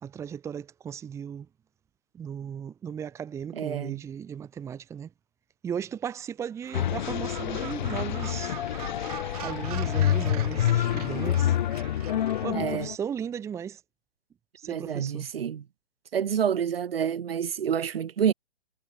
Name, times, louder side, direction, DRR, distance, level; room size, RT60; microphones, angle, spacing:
voice 1, 0.0-1.5 2.1-5.1 5.6-8.6 9.4-11.6 12.4-13.8 14.6-15.2, right 8 dB, 10° right, 2.0 m, -36 dB
voice 2, 3.5-4.0 12.5-12.9 14.6-15.7 16.1-18.3, right 8 dB, 55° right, 4.1 m, -28 dB
Gull seagull, 6.6-12.4, right 15 dB, 35° right, 6.1 m, -43 dB
sound 1, 6.7-13.0, left 11 dB, 40° left, 3.0 m, -27 dB
hypercardioid pair, 160°, 35 cm